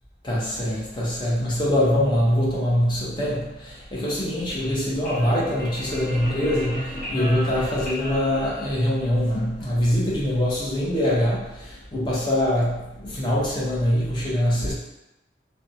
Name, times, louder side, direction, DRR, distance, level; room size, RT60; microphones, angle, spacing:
voice 1, 0.2-14.7, equal, 25° left, -7 dB, 0.7 m, -24 dB
sound 1, 4.5-9.2, equal, 50° left, 0.8 m, -33 dB
2.5 x 2.2 x 2.7 m, 0.96 s
head